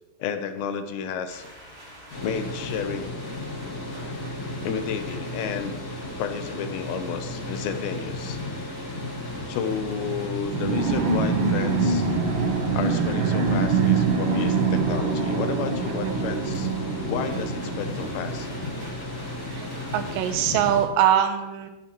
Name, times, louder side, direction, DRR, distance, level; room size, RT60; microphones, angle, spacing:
voice 1, 0.2-1.5 2.2-3.2 4.6-5.8 6.2-8.4 9.5-12.1 12.7-16.7 17.1-18.5, left 7 dB, 85° left, 8 dB, 3.1 m, -31 dB
sound 1, 1.3-20.3, equal, 25° right, 3.6 m, -46 dB
sound 2, 2.1-20.8, left 2 dB, 55° left, 1.6 m, -34 dB
sound 3, 10.5-18.7, right 5 dB, 70° right, 2.3 m, -25 dB
voice 2, 19.9-21.7, right 10 dB, 85° right, 6 dB, 2.8 m, -22 dB
16.0 x 9.5 x 3.0 m, 1.0 s
omnidirectional pair, 5.0 m